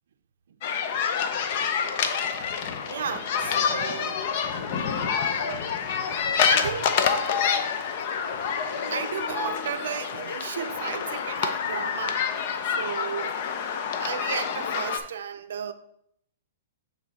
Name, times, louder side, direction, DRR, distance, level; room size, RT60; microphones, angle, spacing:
sound 1, 0.6-15.0, left 7 dB, 50° left, 0.6 m, -27 dB
voice 1, 1.3-2.2 2.5-4.3 4.6-8.0 8.6-13.4 14.0-15.7, right 8 dB, 75° right, 0.5 m, -36 dB
8.6 x 3.2 x 4.0 m
hypercardioid pair, 150°, 0 cm